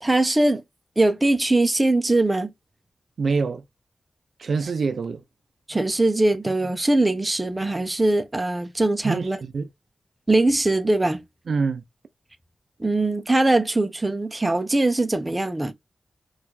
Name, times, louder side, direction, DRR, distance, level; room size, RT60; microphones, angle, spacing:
voice 1, 0.0-0.6 1.0-2.5 5.7-9.4 10.3-11.2 12.8-15.7, right 2 dB, 20° right, 0.5 m, -21 dB
voice 2, 3.2-3.6 4.4-5.2 9.0-9.7 11.5-11.8, right 4 dB, 70° right, 0.4 m, -25 dB
4.4 x 2.3 x 2.4 m
wide cardioid pair, 120°, 0 cm